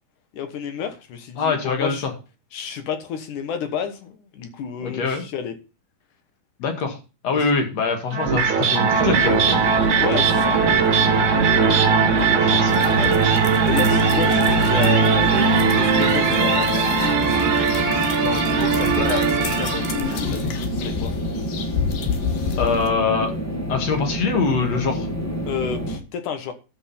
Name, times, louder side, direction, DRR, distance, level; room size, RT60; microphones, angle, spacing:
voice 1, 0.3-2.1 2.5-5.6 7.3-7.5 10.0-10.6 13.6-15.4 15.7-17.6 18.1-21.1 25.5-26.5, left 7 dB, 70° left, 2.7 m, -30 dB
voice 2, 1.4-2.1 4.8-5.2 6.6-7.0 7.2-9.6 12.1-13.3 22.6-23.3 23.7-25.1, left 5 dB, 55° left, 2.9 m, -24 dB
sound 1, 8.1-20.3, right 5 dB, 60° right, 3.4 m, -19 dB
sound 2, 8.9-26.0, equal, 5° left, 1.9 m, -29 dB
sound 3, 12.7-22.9, left 7 dB, 85° left, 3.1 m, -31 dB
12.5 x 5.5 x 5.7 m
omnidirectional pair, 3.9 m